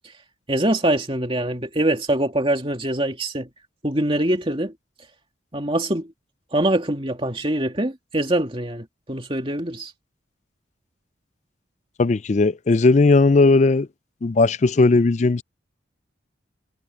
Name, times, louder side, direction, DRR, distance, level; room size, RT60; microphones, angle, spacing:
voice 1, 0.5-3.5 3.8-4.7 5.5-6.1 6.5-9.9, right 1 dB, 25° right, 2.6 m, -23 dB
voice 2, 12.0-13.9 14.2-15.4, left 3 dB, 35° left, 0.4 m, -17 dB
head